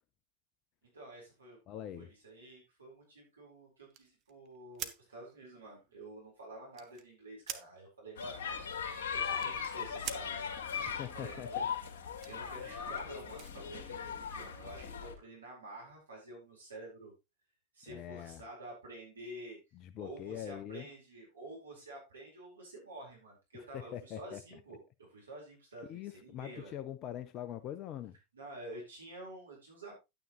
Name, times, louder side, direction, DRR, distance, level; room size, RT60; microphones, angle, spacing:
voice 1, 0.9-8.4 8.8-10.5 11.1-11.7 12.2-17.1 17.7-19.6 20.0-24.8 25.1-26.7 28.3-29.9, right 2 dB, 75° right, 4.6 m, -50 dB
voice 2, 1.7-2.1 10.8-11.7 17.9-18.4 19.7-20.9 23.7-24.4 25.9-28.2, left 11 dB, 35° left, 0.6 m, -43 dB
sound 1, 3.9-7.1 7.4-7.7 8.0-10.3 11.7-14.3, right 11 dB, 35° right, 1.1 m, -48 dB
sound 2, 8.2-15.1, left 7 dB, 55° left, 2.2 m, -39 dB
10.5 x 9.4 x 3.1 m
figure-of-eight pair, 90°, 0 cm